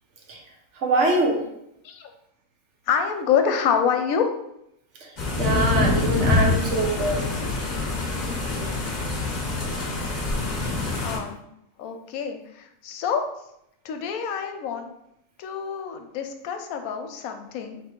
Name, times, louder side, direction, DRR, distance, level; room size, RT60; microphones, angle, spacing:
voice 1, 0.8-1.4 5.0-5.1 5.4-7.2, right 2 dB, 60° right, 1 dB, 1.1 m, -23 dB
voice 2, 2.9-4.2 11.0-11.4 11.8-13.2 13.8-14.9 15.4-17.8, left 7 dB, 85° left, 5 dB, 1.0 m, -26 dB
sound 1, 5.2-11.2, left 3 dB, 40° left, 0.8 m, -25 dB
3.7 x 3.0 x 4.4 m, 0.79 s
omnidirectional pair, 1.4 m